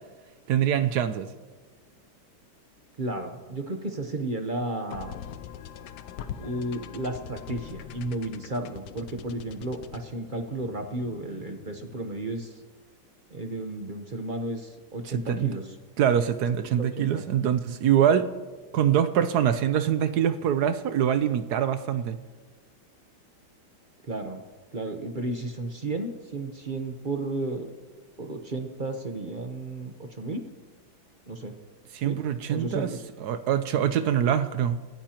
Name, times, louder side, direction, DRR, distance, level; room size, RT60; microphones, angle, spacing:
voice 1, 0.5-1.3 15.0-15.5 16.0-18.3 18.7-22.2 31.9-32.9 33.2-34.8, right 9 dB, 65° right, 11 dB, 1.0 m, -24 dB
voice 2, 3.0-5.1 6.4-12.5 13.3-15.7 16.8-17.2 24.1-24.4 24.7-27.7 28.2-30.4 31.3-31.5 32.0-32.2 32.5-33.0, right 2 dB, 35° right, 5 dB, 0.8 m, -33 dB
sound 1, 4.9-12.2, left 9 dB, 70° left, 1.1 m, -43 dB
28.5 x 15.0 x 3.0 m, 1.3 s
omnidirectional pair, 2.2 m